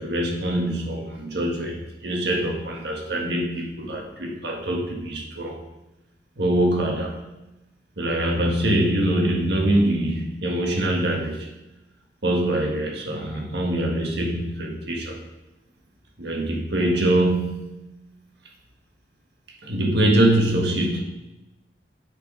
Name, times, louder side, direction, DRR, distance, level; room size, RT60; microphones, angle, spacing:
voice 1, 0.0-5.6 6.4-7.2 8.0-11.5 12.2-15.2 16.2-17.9 19.6-21.0, right 1 dB, 65° right, 0 dB, 1.6 m, -24 dB
9.3 x 4.7 x 5.0 m, 0.97 s
head